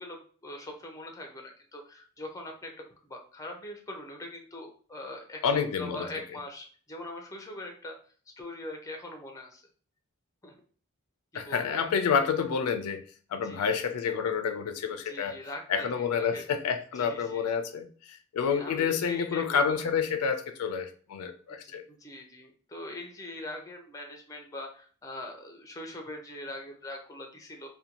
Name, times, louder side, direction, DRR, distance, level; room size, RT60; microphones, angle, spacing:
voice 1, 0.0-8.0 8.4-9.6 10.4-10.5 11.3-11.9 13.3-13.8 15.0-16.4 17.0-17.4 18.4-19.8 21.6-27.7, left 1 dB, 15° left, 2 dB, 0.4 m, -42 dB
voice 2, 5.4-6.1 11.3-15.4 15.7-21.8, left 6 dB, 80° left, 7 dB, 0.4 m, -29 dB
2.5 x 2.2 x 2.8 m, 0.43 s
head